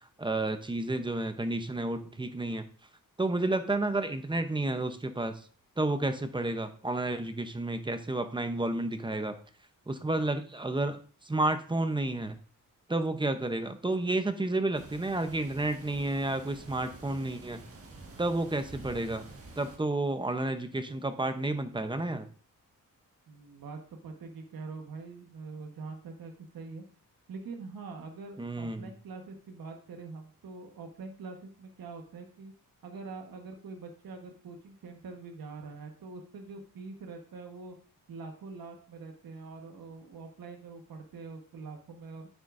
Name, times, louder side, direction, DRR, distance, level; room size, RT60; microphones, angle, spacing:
voice 1, 0.2-2.6 3.2-5.3 5.8-9.3 9.9-11.0 11.2-12.4 12.9-17.6 18.2-19.2 19.5-22.3 28.4-28.9, right 2 dB, 15° right, 8 dB, 0.7 m, -31 dB
sound 1, 14.7-19.8, right 2 dB, 40° right, 1.6 m, -49 dB
voice 2, 23.3-26.9 27.3-32.5 32.8-37.8 38.1-42.3, right 4 dB, 85° right, 3 dB, 1.4 m, -44 dB
9.7 x 8.2 x 2.6 m, 0.41 s
wide cardioid pair, 145°, 34 cm